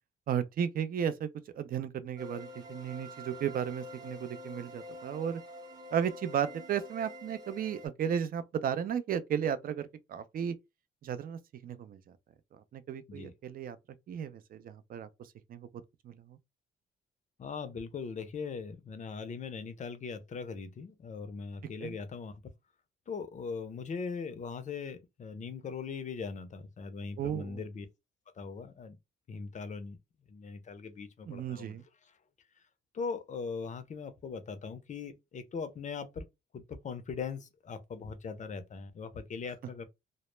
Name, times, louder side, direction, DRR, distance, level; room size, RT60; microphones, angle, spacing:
voice 1, 0.3-1.3 1.6-5.4 5.9-10.6 11.0-12.0 12.7-13.8 14.1-15.1 15.5-15.7 16.0-16.4 21.8-21.9 27.2-27.6 31.3-31.8, right 8 dB, 45° right, 0.4 m, -34 dB
sound 1, 2.2-7.9, left 1 dB, 20° right, 0.7 m, -47 dB
voice 2, 17.4-22.3 23.1-27.9 28.4-29.0 29.3-30.0 30.3-32.1 32.9-36.3 36.5-39.8, left 5 dB, 40° left, 0.5 m, -40 dB
2.0 x 2.0 x 3.1 m
cardioid pair, 90°, 20 cm